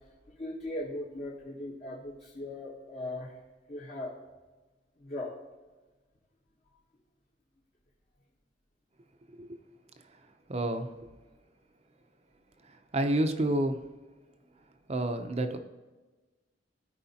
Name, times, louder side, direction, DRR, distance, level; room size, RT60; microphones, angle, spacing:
voice 1, 0.4-3.3 3.7-4.1 5.0-5.3, left 1 dB, 40° left, -4 dB, 1.1 m, -38 dB
voice 2, 10.5-10.9 12.7-13.8 14.9-15.6, right 1 dB, 35° right, 8 dB, 0.6 m, -29 dB
14.0 x 4.8 x 2.9 m, 1.2 s
head